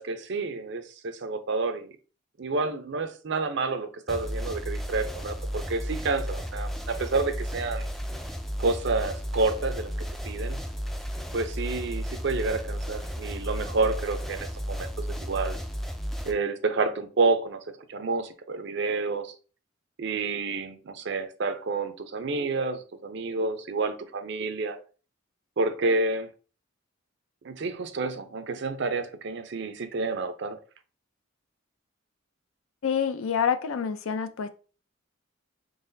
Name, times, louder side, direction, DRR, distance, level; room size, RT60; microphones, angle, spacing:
voice 1, 0.0-1.9 2.4-7.9 8.6-9.9 10.2-10.6 11.3-14.9 15.2-15.6 16.2-17.6 17.9-19.3 20.0-24.8 25.6-26.3 27.4-30.6, right 3 dB, 55° right, 0.5 m, -29 dB
sound 1, 4.1-16.3, equal, ahead, 0.3 m, -33 dB
voice 2, 32.8-34.5, left 7 dB, 80° left, 0.5 m, -27 dB
3.9 x 3.6 x 2.6 m
head